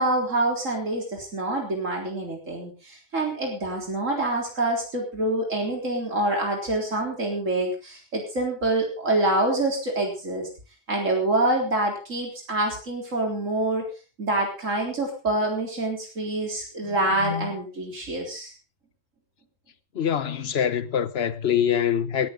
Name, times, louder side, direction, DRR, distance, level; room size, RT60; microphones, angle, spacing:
voice 1, 0.0-10.5 10.9-13.8 14.2-18.5, right 2 dB, 90° right, 4.1 m, -26 dB
voice 2, 16.8-17.5 19.9-22.3, left 9 dB, 55° left, 1.1 m, -25 dB
17.5 x 13.5 x 3.8 m
omnidirectional pair, 1.3 m